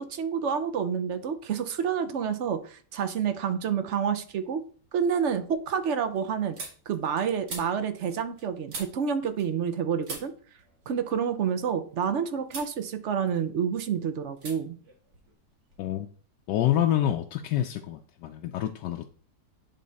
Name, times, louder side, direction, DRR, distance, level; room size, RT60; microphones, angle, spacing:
voice 1, 0.0-4.6 4.9-6.6 6.9-10.3 10.9-14.8, right 7 dB, 60° right, 10 dB, 0.8 m, -28 dB
sound 1, 3.8-4.3 4.7-9.8 10.0-12.1 12.5-12.8 13.1-13.9 14.4-14.6 14.8-15.9, right 3 dB, 85° right, 2.6 m, -44 dB
voice 2, 16.5-19.1, left 11 dB, 80° left, 4 dB, 1.2 m, -27 dB
9.2 x 3.7 x 4.0 m, 0.44 s
omnidirectional pair, 1.8 m